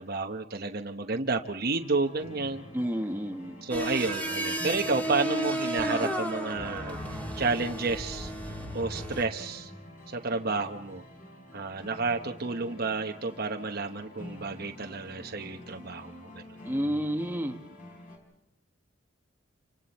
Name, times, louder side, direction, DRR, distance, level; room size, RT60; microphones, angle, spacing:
voice 1, 0.0-2.6 3.6-9.7 10.1-11.0 11.5-16.4, right 3 dB, 50° right, 4 dB, 1.0 m, -31 dB
sound 1, 1.7-18.2, left 1 dB, 40° left, 5.8 m, -48 dB
voice 2, 2.7-3.6 16.6-17.6, equal, 10° right, 4 dB, 1.2 m, -30 dB
sound 2, 3.7-9.3, right 1 dB, 10° left, 2.4 m, -33 dB
29.5 x 26.0 x 4.2 m, 0.78 s
head